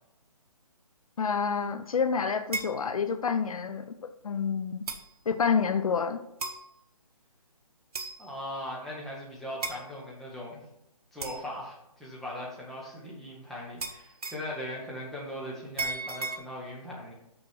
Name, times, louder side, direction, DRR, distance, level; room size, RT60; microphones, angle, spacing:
voice 1, 1.2-4.0 4.2-4.8 5.3-6.2, left 6 dB, 65° left, 10 dB, 0.6 m, -28 dB
sound 1, 2.5-2.8 3.9-4.0 4.9-5.1 6.4-6.6 7.9-8.3 9.6-9.8 11.2-11.5 13.8-14.5 15.8-16.4, right 3 dB, 70° right, 1.1 m, -35 dB
voice 2, 8.2-10.6 11.1-17.1, left 1 dB, ahead, -5 dB, 1.1 m, -39 dB
6.3 x 6.2 x 4.5 m, 0.84 s
hypercardioid pair, 155°, 20 cm